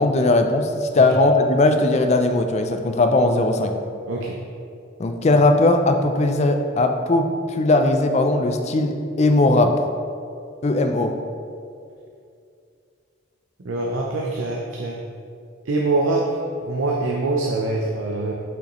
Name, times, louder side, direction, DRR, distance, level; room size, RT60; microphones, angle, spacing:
voice 1, 0.0-3.7 5.0-9.7 10.6-11.2, left 2 dB, 35° left, 6 dB, 0.4 m, -19 dB
voice 2, 4.1-4.4 13.6-15.0 15.7-18.3, right 2 dB, 75° right, -1 dB, 0.6 m, -24 dB
6.3 x 5.6 x 3.1 m, 2.4 s
head